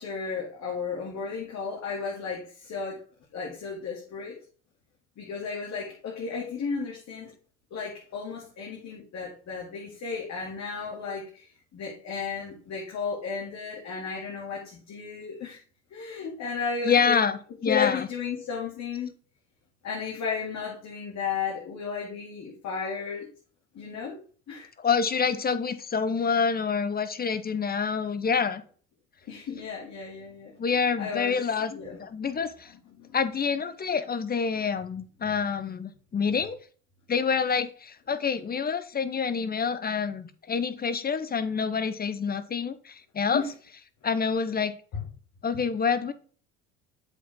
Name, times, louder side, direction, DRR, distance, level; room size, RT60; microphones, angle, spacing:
voice 1, 0.0-3.0 3.3-4.4 5.2-7.3 7.7-11.5 11.7-15.6 15.9-17.2 17.7-19.1 19.8-23.3 23.7-24.7 29.3-30.5 31.0-31.4 31.7-32.0 32.9-33.2 43.3-43.5 44.9-45.0, left 5 dB, 50° left, -3 dB, 2.5 m, -34 dB
voice 2, 16.8-18.1 24.8-28.6 30.6-31.7 32.0-32.7 33.1-36.6 37.1-43.4 44.0-44.7 45.4-46.1, left 6 dB, 25° left, 14 dB, 0.8 m, -27 dB
7.9 x 5.2 x 3.6 m, 0.41 s
hypercardioid pair, 75°, 36 cm